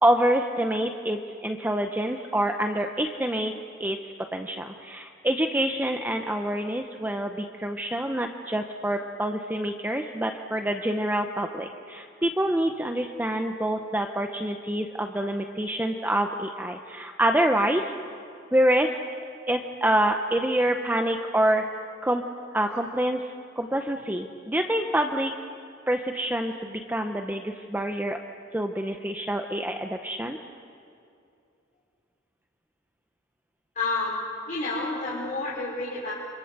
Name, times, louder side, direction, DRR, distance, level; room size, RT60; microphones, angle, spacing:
voice 1, 0.0-3.5 3.8-17.9 18.5-19.0 19.5-21.7 22.0-22.2 22.5-25.3 25.9-28.2 28.5-30.4, right 1 dB, 10° right, 4 dB, 0.8 m, -26 dB
voice 2, 33.7-34.2 34.5-36.1, left 3 dB, 40° left, -7 dB, 4.9 m, -29 dB
29.5 x 27.0 x 6.7 m, 2.5 s
head